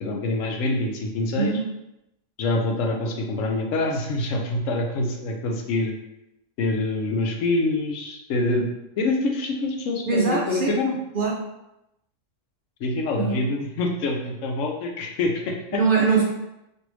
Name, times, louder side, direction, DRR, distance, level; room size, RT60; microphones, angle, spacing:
voice 1, 0.0-1.5 2.4-6.0 6.6-8.7 9.0-11.0 12.8-15.8, left 2 dB, 90° left, 2 dB, 1.0 m, -25 dB
voice 2, 1.3-1.7 10.1-10.8 11.1-11.3 13.1-13.4 15.7-16.2, right 4 dB, 60° right, -2 dB, 0.6 m, -22 dB
3.2 x 2.6 x 3.0 m, 0.88 s
omnidirectional pair, 1.3 m